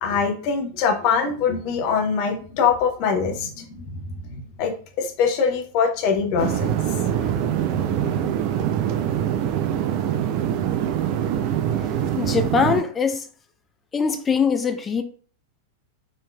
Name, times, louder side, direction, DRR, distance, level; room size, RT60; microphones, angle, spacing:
voice 1, 0.0-8.3, left 6 dB, 45° left, 0.8 m, -24 dB
sound 1, 6.4-12.8, right 10 dB, 45° right, 0.4 m, -24 dB
voice 2, 12.2-13.3 13.9-15.0, left 5 dB, 20° left, 0.4 m, -22 dB
4.2 x 3.1 x 2.3 m
figure-of-eight pair, 90°, 0 cm